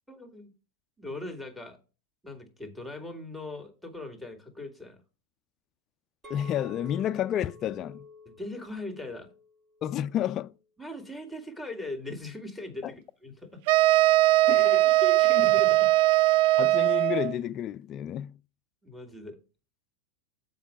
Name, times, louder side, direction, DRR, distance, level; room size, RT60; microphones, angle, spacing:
voice 1, 0.1-0.5 1.0-1.8 2.2-5.0 8.3-9.3 10.8-13.6 14.4-15.9 18.8-19.4, left 2 dB, ahead, 2.0 m, -40 dB
Chink clink, 6.2-10.6 11.0-11.4, left 2 dB, 25° right, 1.9 m, -50 dB
voice 2, 6.3-8.1 9.8-10.5 12.8-12.9 14.5-14.9 15.4-15.5 16.6-18.4, left 10 dB, 40° left, 0.4 m, -31 dB
sound 1, 13.7-17.3, right 17 dB, 60° right, 0.3 m, -20 dB
7.3 x 5.4 x 5.0 m
hypercardioid pair, 120°, 0 cm